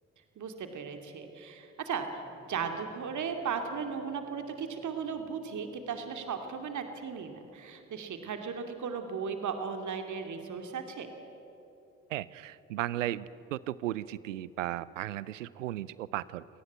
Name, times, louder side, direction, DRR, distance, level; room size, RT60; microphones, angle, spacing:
voice 1, 0.4-11.1, right 6 dB, 50° right, 6 dB, 2.7 m, -36 dB
sound 1, 2.1-8.8, right 1 dB, 25° right, 7.4 m, -58 dB
voice 2, 12.1-16.4, right 14 dB, 80° right, 20 dB, 0.6 m, -35 dB
27.5 x 19.0 x 9.6 m, 3.0 s
figure-of-eight pair, 40°, 37 cm